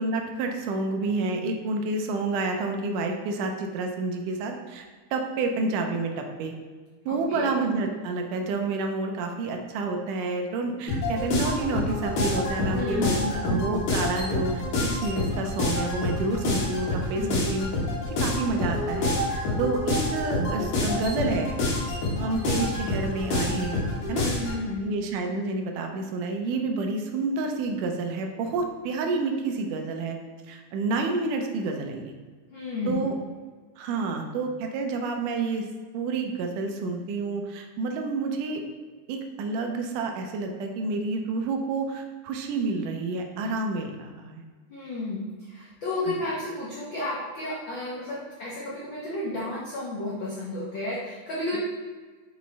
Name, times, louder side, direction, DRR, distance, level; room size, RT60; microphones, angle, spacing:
voice 1, 0.0-6.5 7.1-17.7 18.0-21.5 22.2-24.3 24.8-30.2 30.5-32.1 32.9-33.2 33.8-35.7 35.9-38.6 39.1-44.4, right 3 dB, 80° right, 4 dB, 2.2 m, -29 dB
voice 2, 7.1-7.5 12.7-13.8 16.3-16.4 17.1-17.6 24.1-24.9 32.5-33.0 44.7-51.6, left 2 dB, 85° left, -6 dB, 1.0 m, -32 dB
sound 1, 10.9-24.6, left 2 dB, 55° left, 1.9 m, -27 dB
5.5 x 4.8 x 4.0 m, 1.4 s
omnidirectional pair, 3.7 m